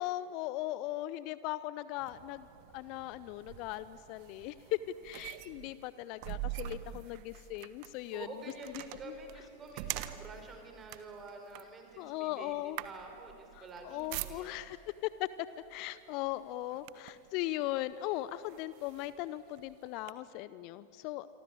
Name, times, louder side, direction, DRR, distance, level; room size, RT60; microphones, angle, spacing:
voice 1, 0.0-2.5 2.7-8.3 9.1-9.2 12.0-12.8 13.6-14.8 15.0-15.3 15.7-21.3, left 15 dB, 45° left, 16 dB, 0.7 m, -38 dB
sound 1, 2.0-14.8 15.7-15.9 16.3-17.3 17.9-18.0 18.5-20.1, right 15 dB, 45° right, 1.2 m, -45 dB
voice 2, 6.8-7.2 8.1-14.6, right 3 dB, 20° right, 4 dB, 5.2 m, -48 dB
27.5 x 24.0 x 8.7 m, 2.8 s
figure-of-eight pair, 90°, 0 cm